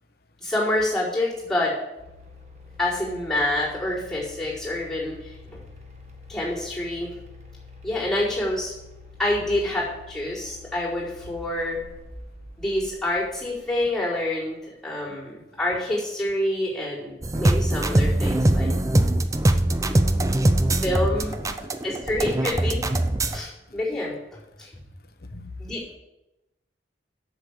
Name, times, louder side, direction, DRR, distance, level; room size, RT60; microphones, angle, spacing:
voice 1, 0.4-1.7 2.8-5.6 6.3-7.1 7.8-8.7 9.2-11.8 12.6-18.7 20.8-21.4 21.8-22.8 23.3-24.7 25.6-26.0, left 1 dB, ahead, -9 dB, 4.5 m, -27 dB
sound 1, 2.0-14.3, left 3 dB, 40° right, 1.7 m, -46 dB
sound 2, 17.2-23.4, right 1 dB, 20° right, 0.5 m, -22 dB
voice 2, 21.2-21.7 22.3-22.4 23.7-23.8 25.2-25.5, left 2 dB, 60° left, 7 dB, 1.0 m, -44 dB
8.1 x 7.0 x 8.2 m, 0.98 s
head